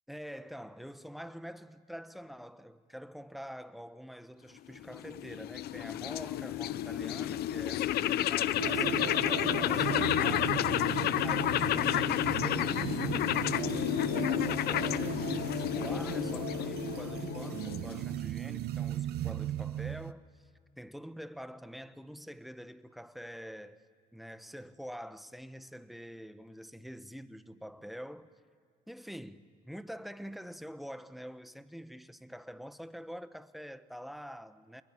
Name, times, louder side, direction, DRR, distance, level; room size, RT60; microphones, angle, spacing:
voice 1, 0.1-20.3 20.8-23.8 24.1-28.3 28.9-34.8, equal, ahead, 1.0 m, -46 dB
sound 1, 4.8-18.2, left 13 dB, 70° left, 0.7 m, -31 dB
sound 2, 8.6-20.1, right 12 dB, 70° right, 0.8 m, -37 dB
27.0 x 21.0 x 9.9 m
cardioid pair, 110°, 17 cm